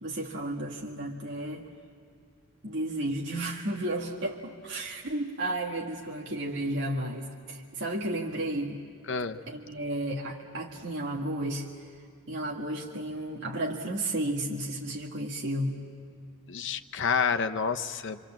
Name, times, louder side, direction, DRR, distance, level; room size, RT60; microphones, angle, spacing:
voice 1, 0.0-1.7 2.6-8.8 9.5-11.7 12.3-15.8, right 1 dB, 60° right, -2 dB, 1.9 m, -33 dB
voice 2, 9.1-9.4 16.5-18.2, left 6 dB, 60° left, 8 dB, 0.9 m, -29 dB
28.5 x 24.5 x 7.5 m, 2.3 s
head